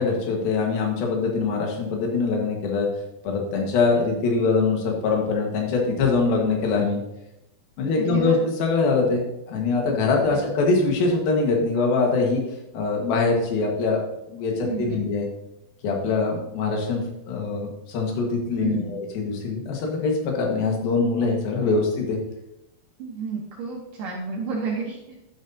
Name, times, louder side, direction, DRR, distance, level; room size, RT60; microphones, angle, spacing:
voice 1, 0.0-2.9 3.2-7.0 7.8-12.4 12.7-14.0 14.3-15.3 15.8-22.2, left 4 dB, 70° left, 1 dB, 3.2 m, -23 dB
voice 2, 8.0-8.5 10.3-10.4 14.6-15.0 18.6-19.0 23.0-25.2, right 4 dB, 70° right, -2 dB, 2.4 m, -31 dB
11.0 x 7.9 x 2.7 m, 0.87 s
omnidirectional pair, 4.5 m